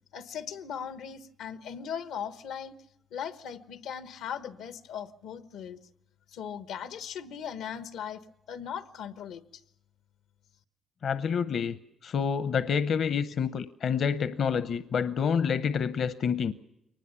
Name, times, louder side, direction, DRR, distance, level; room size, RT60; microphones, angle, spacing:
voice 1, 0.1-2.7 3.1-5.8 6.3-8.2 8.5-9.4, left 8 dB, 90° left, 13 dB, 1.1 m, -38 dB
voice 2, 11.0-11.8 12.0-16.5, left 6 dB, 55° left, 14 dB, 0.8 m, -28 dB
23.0 x 19.5 x 7.1 m, 0.82 s
cardioid pair, 105°, 0 cm